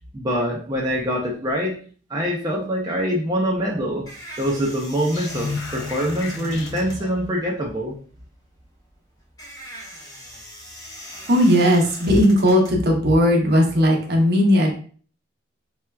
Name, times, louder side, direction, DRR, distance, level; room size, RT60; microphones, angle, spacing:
voice 1, 0.1-1.8 2.1-4.1 4.4-8.0, equal, 20° right, -3 dB, 0.5 m, -24 dB
sound 1, 3.5-13.4, equal, 20° left, 0.7 m, -41 dB
sound 2, 5.1-7.4, left 4 dB, 75° left, 0.4 m, -32 dB
voice 2, 11.3-14.7, equal, 60° right, 1 dB, 0.8 m, -17 dB
4.4 x 2.3 x 2.2 m, 0.43 s
head